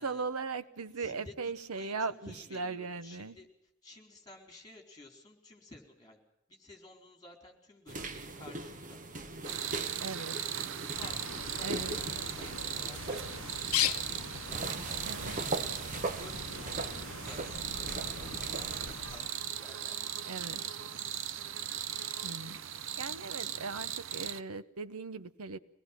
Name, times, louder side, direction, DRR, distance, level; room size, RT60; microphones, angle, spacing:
voice 1, 0.0-3.4 10.0-10.4 11.6-12.0 15.1-15.4 20.3-20.6 22.2-22.6 23.0-25.6, right 4 dB, 90° right, 0.9 m, -38 dB
voice 2, 1.0-3.5 3.8-6.2 6.5-9.0 9.4-10.5 10.8-11.8 12.2-21.0, left 2 dB, 20° left, 4.3 m, -54 dB
sound 1, 7.9-18.9, right 2 dB, 40° right, 1.1 m, -41 dB
sound 2, 9.4-24.4, right 9 dB, 65° right, 0.7 m, -38 dB
Bird, 10.9-19.3, left 10 dB, 70° left, 0.7 m, -40 dB
24.5 x 19.0 x 6.0 m
head